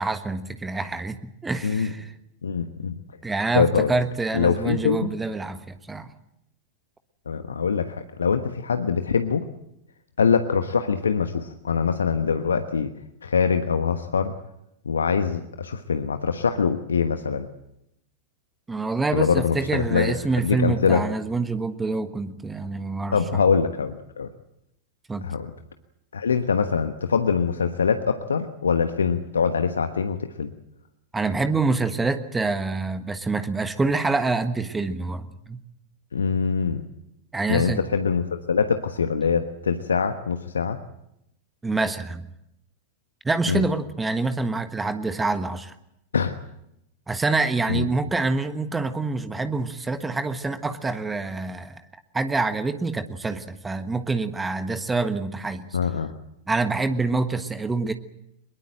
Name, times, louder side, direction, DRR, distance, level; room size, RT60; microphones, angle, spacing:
voice 1, 0.0-2.1 3.2-6.1 18.7-23.4 25.1-25.3 31.1-35.6 37.3-37.8 41.6-42.2 43.2-45.7 47.1-51.8 52.1-55.6 56.5-57.9, right 3 dB, 10° right, 10 dB, 1.4 m, -26 dB
voice 2, 2.4-3.0 3.5-3.9 4.3-5.1 7.3-9.4 10.2-12.9 13.2-14.3 14.8-17.5 19.1-20.1 20.4-21.0 23.1-24.3 25.2-25.5 26.1-30.5 36.1-36.8 37.5-40.8 43.5-43.6 46.1-46.3 47.7-47.9 55.7-56.1, left 6 dB, 70° left, 8 dB, 1.3 m, -23 dB
24.0 x 22.0 x 7.8 m, 0.83 s
figure-of-eight pair, 90°, 0 cm